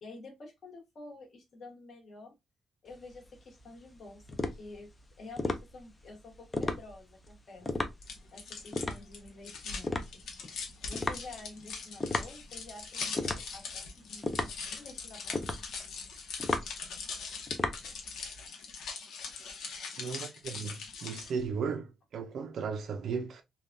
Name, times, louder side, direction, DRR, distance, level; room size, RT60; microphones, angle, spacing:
voice 1, 0.0-2.3 2.8-4.9 5.2-7.7 8.3-10.2 10.9-15.4, left 2 dB, 40° left, 1.1 m, -49 dB
sound 1, 2.9-18.4, left 2 dB, 15° left, 0.4 m, -36 dB
sound 2, 8.0-21.5, left 5 dB, 80° left, 0.8 m, -41 dB
voice 2, 20.0-23.4, right 5 dB, 60° right, 0.4 m, -36 dB
3.4 x 2.2 x 2.5 m
wide cardioid pair, 175°, 0 cm